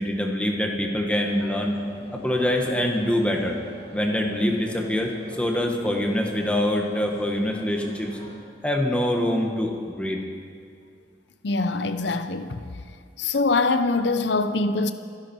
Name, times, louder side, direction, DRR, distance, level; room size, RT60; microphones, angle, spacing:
voice 1, 0.0-1.8 2.1-3.6 3.9-8.1 8.6-10.2, left 1 dB, 5° left, 1.6 m, -24 dB
sound 1, 1.1-8.4, left 1 dB, 35° left, 2.2 m, -45 dB
voice 2, 11.4-12.6 13.2-14.9, left 3 dB, 70° left, 0.7 m, -23 dB
28.5 x 11.0 x 4.6 m
head